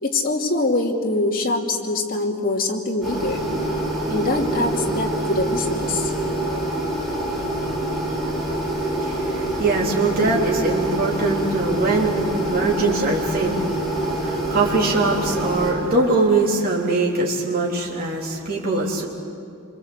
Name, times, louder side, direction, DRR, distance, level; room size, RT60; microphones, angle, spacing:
voice 1, 0.0-3.4 4.1-6.1, left 2 dB, 40° left, 0 dB, 2.9 m, -23 dB
sound 1, 3.0-15.7, right 1 dB, ahead, 6.7 m, -25 dB
voice 2, 8.8-19.1, right 3 dB, 45° right, -3 dB, 3.6 m, -22 dB
26.5 x 24.0 x 8.1 m, 2.4 s
head